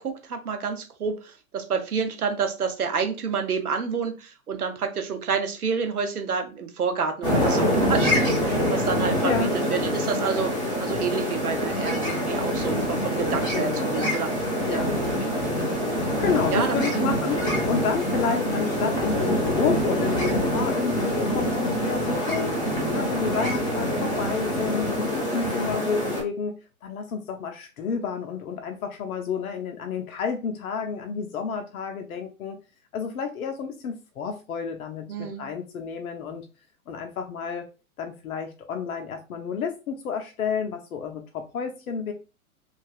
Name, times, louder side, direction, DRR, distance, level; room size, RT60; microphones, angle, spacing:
voice 1, 0.0-10.5 10.8-14.3 14.7-14.8 15.2-15.6 16.5-17.1 17.4-17.5 35.1-35.5, right 6 dB, 80° right, 6 dB, 0.8 m, -29 dB
sound 1, 7.2-26.2, equal, 10° left, 0.8 m, -25 dB
voice 2, 13.5-14.1 14.7-15.0 16.0-32.6 32.9-36.5 36.9-37.7 38.0-42.1, left 6 dB, 70° left, 5 dB, 0.6 m, -30 dB
3.1 x 2.4 x 2.3 m, 0.31 s
figure-of-eight pair, 110°, 44 cm